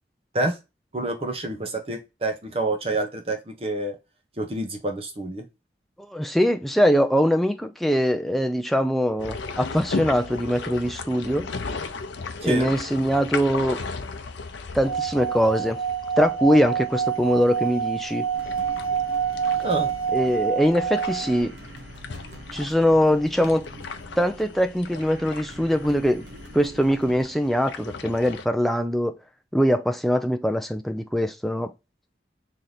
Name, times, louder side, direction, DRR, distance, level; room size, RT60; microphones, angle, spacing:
voice 1, 0.9-4.0 4.4-5.4 12.4-12.7 19.6-19.9, right 2 dB, 30° right, 0.8 m, -28 dB
voice 2, 6.1-11.5 12.4-13.8 14.7-15.8 16.2-18.3 20.1-21.5 22.5-23.7 24.2-26.3 26.5-29.2 29.5-31.7, equal, ahead, 0.4 m, -22 dB
sound 1, 9.2-28.4, left 4 dB, 85° left, 0.6 m, -37 dB
Singing / Glass, 14.8-21.4, right 7 dB, 50° left, 0.7 m, -27 dB
sound 2, 18.3-27.2, equal, 80° right, 1.0 m, -44 dB
3.2 x 2.8 x 3.9 m
head